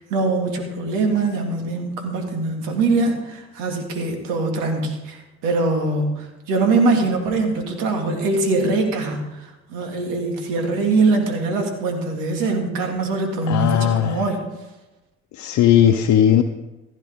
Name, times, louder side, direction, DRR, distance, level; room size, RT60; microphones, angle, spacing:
voice 1, 0.0-14.4, right 3 dB, 75° right, 3 dB, 2.4 m, -22 dB
voice 2, 13.5-14.2 15.4-16.4, left 10 dB, 55° left, 5 dB, 0.8 m, -17 dB
15.5 x 10.0 x 3.7 m, 1.0 s
hypercardioid pair, 60°, 33 cm